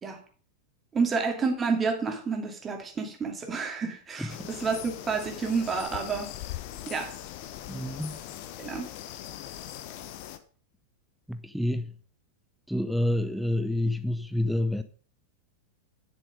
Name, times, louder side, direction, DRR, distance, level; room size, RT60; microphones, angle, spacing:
voice 1, 0.9-6.3 6.9-7.2 8.6-8.8, right 5 dB, 20° right, 2.5 m, -29 dB
sound 1, 4.3-10.4, left 12 dB, 45° left, 1.0 m, -40 dB
voice 2, 7.7-8.2 11.3-12.0 12.7-14.8, left 1 dB, ahead, 0.7 m, -28 dB
11.0 x 7.0 x 5.1 m
figure-of-eight pair, 90°, 0 cm